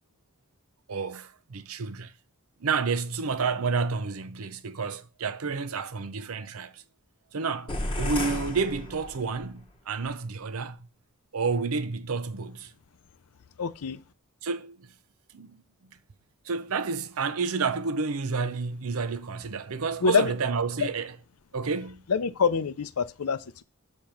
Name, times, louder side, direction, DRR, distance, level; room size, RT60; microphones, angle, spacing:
voice 1, 0.9-2.1 2.6-6.8 7.3-10.8 11.3-12.7 14.4-14.9 15.3-15.6 16.4-21.1 21.5-22.0, right 4 dB, 75° right, 0.7 m, -30 dB
sound 1, 7.7-9.5, left 1 dB, 25° left, 1.1 m, -33 dB
voice 2, 13.6-14.0 20.0-20.3 20.8-20.9 22.1-23.6, left 5 dB, 90° left, 0.6 m, -25 dB
6.7 x 5.2 x 5.9 m
head